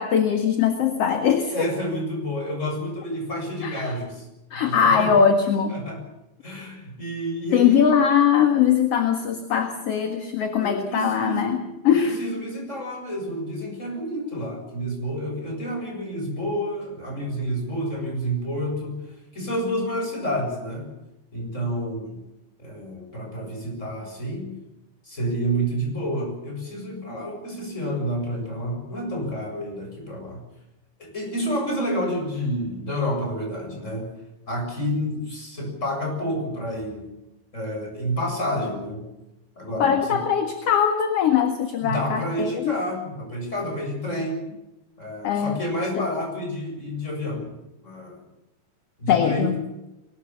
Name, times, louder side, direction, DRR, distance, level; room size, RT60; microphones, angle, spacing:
voice 1, 0.0-1.7 3.6-3.9 4.5-5.8 7.5-11.6 11.8-12.1 39.8-42.7 45.2-45.6 46.0-46.1 49.1-49.5, left 7 dB, 50° left, 5 dB, 2.3 m, -21 dB
voice 2, 1.5-4.2 4.5-5.1 5.7-6.0 6.4-8.0 10.6-19.0 19.3-20.9 21.3-22.2 22.6-24.6 25.0-30.4 31.0-34.1 34.5-37.1 37.5-39.1 39.6-40.2 41.8-44.4 45.0-47.5 47.8-48.2 49.0-49.5, equal, 20° left, 2 dB, 7.5 m, -29 dB
23.5 x 21.0 x 7.3 m, 0.95 s
omnidirectional pair, 4.3 m